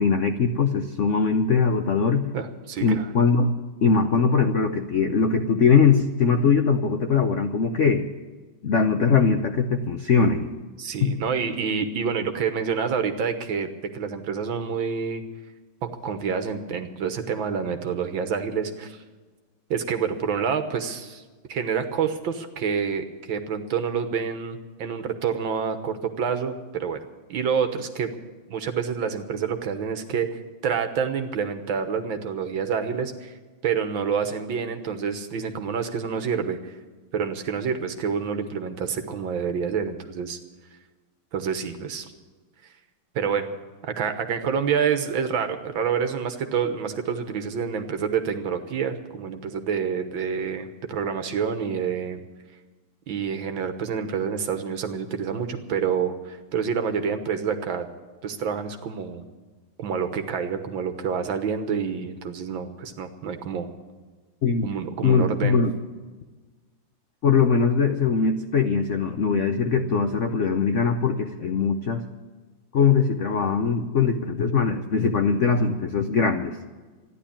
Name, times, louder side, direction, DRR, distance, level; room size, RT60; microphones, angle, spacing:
voice 1, 0.0-2.3 2.8-3.5 3.8-8.0 8.6-10.5 11.0-11.1 64.4-64.7 65.0-65.7 67.2-72.0 72.7-76.6, left 5 dB, 80° left, 6 dB, 0.6 m, -21 dB
voice 2, 2.3-3.1 10.8-15.2 15.8-19.0 19.7-21.2 21.5-27.0 27.3-28.1 28.5-30.3 30.6-33.3 33.6-36.7 37.1-40.4 41.3-42.1 43.2-43.5 43.8-52.2 53.1-57.9 58.2-59.2 59.8-63.7 64.6-65.6, right 6 dB, 65° right, 8 dB, 1.8 m, -28 dB
14.0 x 11.0 x 8.6 m, 1.3 s
omnidirectional pair, 2.4 m